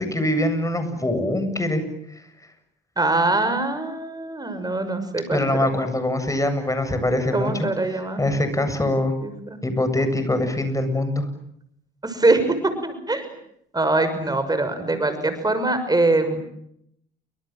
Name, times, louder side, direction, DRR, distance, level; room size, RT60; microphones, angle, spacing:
voice 1, 0.0-1.8 5.3-7.7 8.2-9.1 9.6-11.3, left 1 dB, 15° left, 9 dB, 8.0 m, -23 dB
voice 2, 3.0-5.7 7.3-8.2 9.2-9.6 12.0-12.6 12.8-13.3 13.7-16.4, right 2 dB, 20° right, 9 dB, 6.2 m, -23 dB
29.5 x 26.0 x 7.6 m, 0.73 s
cardioid pair, 90°, 20 cm